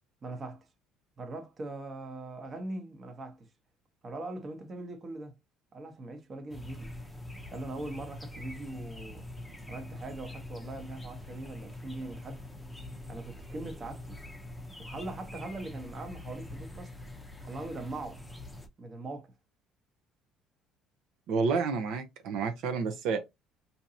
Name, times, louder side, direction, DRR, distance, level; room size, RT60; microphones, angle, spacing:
voice 1, 0.2-0.7 1.2-3.5 4.0-5.3 5.7-6.9 7.5-9.3 9.7-12.4 13.1-14.2 14.8-16.9 17.4-18.2 18.8-19.3, right 2 dB, 30° right, 0.9 m, -41 dB
sound 1, 6.5-18.7, left 1 dB, 5° left, 0.7 m, -44 dB
voice 2, 21.3-23.2, right 5 dB, 70° right, 0.7 m, -30 dB
4.4 x 2.8 x 2.7 m
cardioid pair, 115°, 0 cm